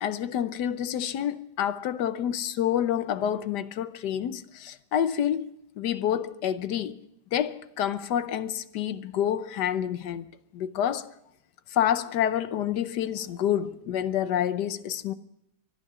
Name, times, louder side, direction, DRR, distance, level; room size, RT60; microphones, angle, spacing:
voice 1, 0.0-5.5 5.8-7.0 7.3-11.1 11.7-15.1, left 10 dB, 70° left, 1.3 m, -28 dB
24.0 x 11.0 x 4.9 m
omnidirectional pair, 1.9 m